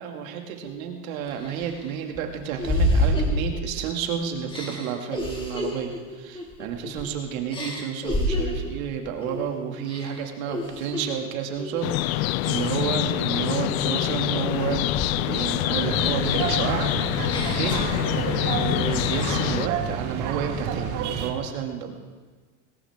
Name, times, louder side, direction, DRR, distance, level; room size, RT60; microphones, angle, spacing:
voice 1, 0.0-16.9 17.5-17.8 18.1-22.0, right 8 dB, 80° right, 3 dB, 2.4 m, -31 dB
sound 1, 0.6-0.7 1.3-4.0 4.5-7.1 7.5-8.7 9.2-9.5 9.8-11.1 11.6-11.9 12.4-13.0 13.5-15.4 15.8-18.5 18.8-19.5, left 1 dB, 10° left, 2.3 m, -30 dB
sound 2, 11.8-19.7, left 17 dB, 80° left, 0.5 m, -26 dB
sound 3, 15.7-21.3, right 7 dB, 45° right, 1.7 m, -29 dB
20.5 x 18.0 x 3.6 m, 1.4 s
supercardioid pair, 140°, 41 cm